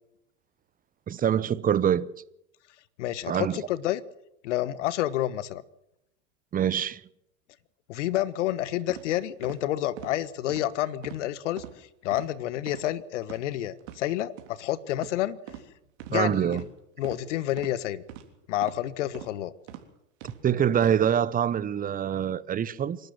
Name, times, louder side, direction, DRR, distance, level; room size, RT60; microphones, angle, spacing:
voice 1, 1.1-2.1 3.3-3.6 6.5-7.0 16.1-16.6 20.2-23.0, right 9 dB, 20° right, 1.0 m, -25 dB
voice 2, 3.0-4.0 4.4-5.6 7.9-15.4 16.1-16.6 17.0-18.0 18.5-19.5, left 13 dB, 70° left, 1.4 m, -29 dB
sound 1, 8.9-9.0 9.4-9.6 10.0-10.1 10.5-10.7 11.0-11.2 11.6-11.7 12.1-12.3 12.7-12.9 13.2-13.4 13.8-14.0 14.4-14.5 15.0-15.2 15.5-15.6 16.0-16.1 16.5-16.7 17.0-17.2 17.6-17.7 18.1-18.2 18.6-18.8 19.1-19.3 19.7-19.8 20.2-20.4 20.8-20.9, right 13 dB, 60° right, 3.6 m, -42 dB
26.5 x 12.5 x 8.0 m
hypercardioid pair, 100°, 38 cm